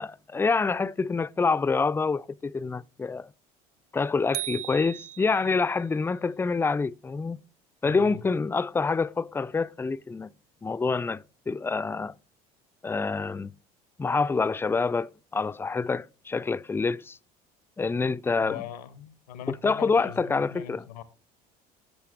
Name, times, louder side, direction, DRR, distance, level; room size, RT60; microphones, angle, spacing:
voice 1, 0.0-3.3 3.9-7.4 7.8-10.3 10.6-12.1 12.8-13.5 14.0-17.2 17.8-18.6 19.5-20.8, left 4 dB, 10° left, 0.3 m, -27 dB
sound 1, 4.3-5.7, right 15 dB, 75° right, 0.5 m, -37 dB
voice 2, 7.8-8.2 18.4-21.0, left 10 dB, 85° left, 0.9 m, -40 dB
13.0 x 8.3 x 2.5 m
hypercardioid pair, 70°, 20 cm